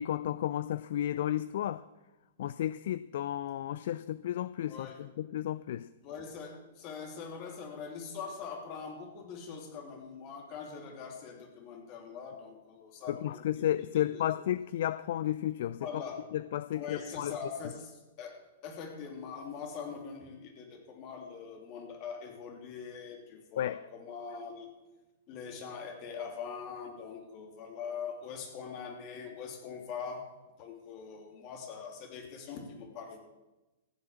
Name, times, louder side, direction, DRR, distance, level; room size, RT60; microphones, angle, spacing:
voice 1, 0.0-1.8 2.4-5.9 13.1-15.9 16.3-17.3 23.6-23.8, left 12 dB, 55° left, 16 dB, 0.4 m, -33 dB
voice 2, 4.7-5.0 6.0-14.3 15.8-16.2 16.7-24.7 25.3-30.3 30.6-33.2, left 6 dB, 40° left, 3 dB, 3.1 m, -43 dB
14.5 x 7.8 x 7.2 m, 1.1 s
figure-of-eight pair, 105°, 0 cm